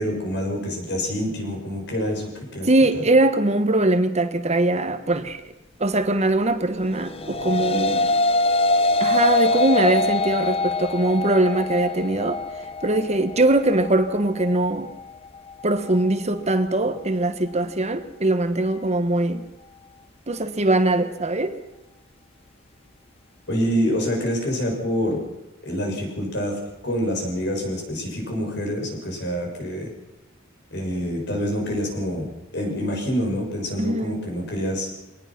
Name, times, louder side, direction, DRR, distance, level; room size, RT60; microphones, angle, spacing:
voice 1, 0.0-2.7 23.5-25.2 25.6-26.6 26.8-29.9 30.7-34.9, equal, 55° left, 1 dB, 6.7 m, -26 dB
voice 2, 2.6-5.4 5.8-8.1 9.0-12.4 12.8-14.9 15.6-19.4 20.3-21.6 33.8-34.2, right 2 dB, 35° right, 9 dB, 1.2 m, -21 dB
sound 1, 7.0-16.2, left 2 dB, 30° left, 0.6 m, -24 dB
23.0 x 19.0 x 5.9 m, 0.97 s
head